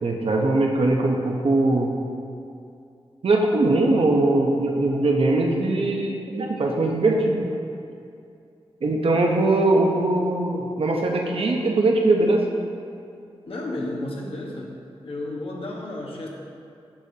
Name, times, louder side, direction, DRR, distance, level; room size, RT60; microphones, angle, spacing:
voice 1, 0.0-1.9 3.2-7.5 8.8-12.5, right 2 dB, 65° right, 0 dB, 0.9 m, -21 dB
voice 2, 13.4-14.8 15.0-16.3, left 1 dB, 65° left, -2 dB, 1.2 m, -32 dB
8.6 x 6.4 x 2.9 m, 2.5 s
cardioid pair, 60°, 10 cm